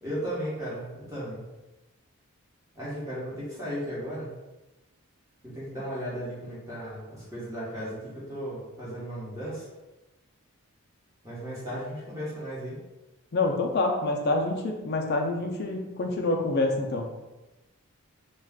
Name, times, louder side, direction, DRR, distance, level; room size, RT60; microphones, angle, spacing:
voice 1, 0.0-1.4 2.7-4.3 5.4-9.7 11.2-12.8, equal, 15° right, -8 dB, 1.0 m, -35 dB
voice 2, 13.3-17.1, left 2 dB, 45° left, 2 dB, 0.4 m, -27 dB
2.4 x 2.3 x 3.5 m, 1.1 s
head